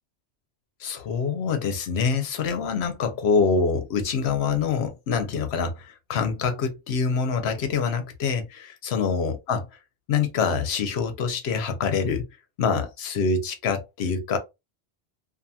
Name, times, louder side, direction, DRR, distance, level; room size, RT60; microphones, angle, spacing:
voice 1, 0.8-9.7 10.1-12.3 12.6-14.4, left 5 dB, 75° left, 0.9 m, -25 dB
2.7 x 2.5 x 2.3 m
omnidirectional pair, 1.1 m